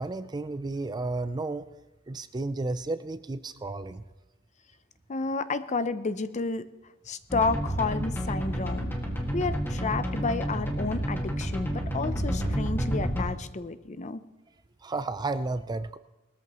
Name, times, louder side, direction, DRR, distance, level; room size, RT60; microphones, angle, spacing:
voice 1, 0.0-1.7 2.1-4.0 14.8-16.0, right 2 dB, 20° right, 13 dB, 0.4 m, -32 dB
voice 2, 5.1-6.6 7.1-8.9 9.3-14.2, left 3 dB, 35° left, 13 dB, 0.6 m, -31 dB
sound 1, 7.3-13.2, equal, 10° left, 1.9 m, -30 dB
19.5 x 13.5 x 3.0 m, 1.0 s
head